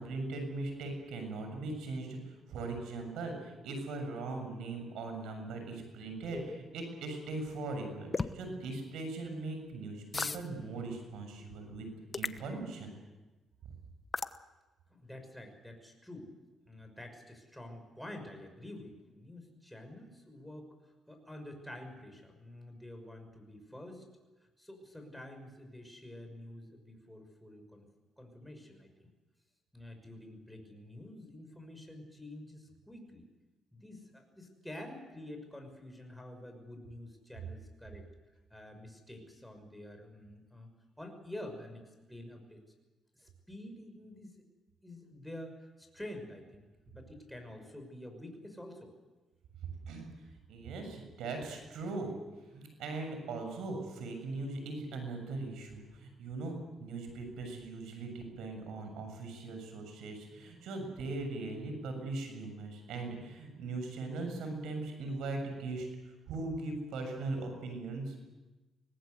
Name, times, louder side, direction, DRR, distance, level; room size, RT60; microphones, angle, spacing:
voice 1, 0.0-12.9 49.8-50.1 50.5-52.1 52.5-65.9 66.3-68.1, right 3 dB, 85° right, 5 dB, 7.1 m, -40 dB
sound 1, 6.3-6.6 8.1-8.4 10.1-10.4 12.1-12.4 14.1-14.4, left 4 dB, 30° left, 1.0 m, -34 dB
voice 2, 15.0-16.3 16.7-20.7 21.1-24.1 24.6-27.8 28.2-29.1 29.7-33.3 33.7-38.1 38.5-40.7 41.0-41.8 42.1-42.6 43.2-44.4 44.8-48.9, left 1 dB, 5° left, 4 dB, 6.0 m, -48 dB
25.0 x 19.0 x 8.1 m, 1.1 s
cardioid pair, 90°, 0 cm